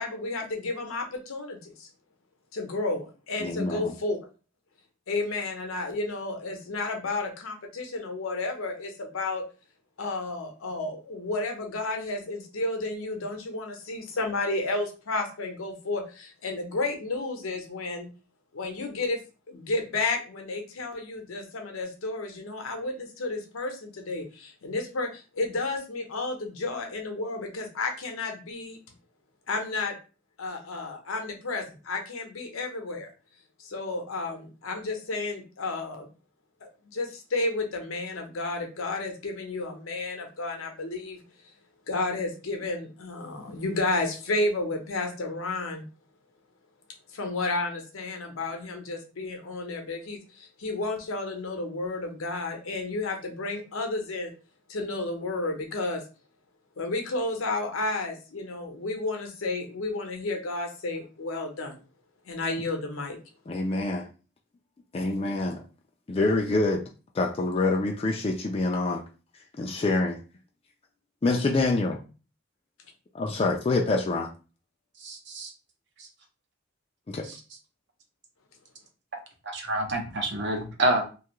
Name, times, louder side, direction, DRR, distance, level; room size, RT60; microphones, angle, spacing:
voice 1, 0.0-1.9 2.5-4.2 5.1-9.4 10.0-18.1 18.5-19.2 19.5-28.8 29.5-29.9 30.4-33.1 33.6-36.1 36.6-41.2 41.9-45.9 47.1-54.3 54.7-56.0 56.8-61.8 62.2-63.2, left 2 dB, 90° left, 3 dB, 0.7 m, -32 dB
voice 2, 3.4-3.9 63.5-64.1 64.9-65.6 66.1-66.8 67.1-69.0 69.6-70.2 71.2-72.0 73.1-74.3 77.1-77.3, left 2 dB, 30° left, 0 dB, 0.3 m, -26 dB
voice 3, 79.5-81.0, right 1 dB, 55° right, 2 dB, 0.7 m, -27 dB
2.6 x 2.4 x 3.0 m, 0.34 s
head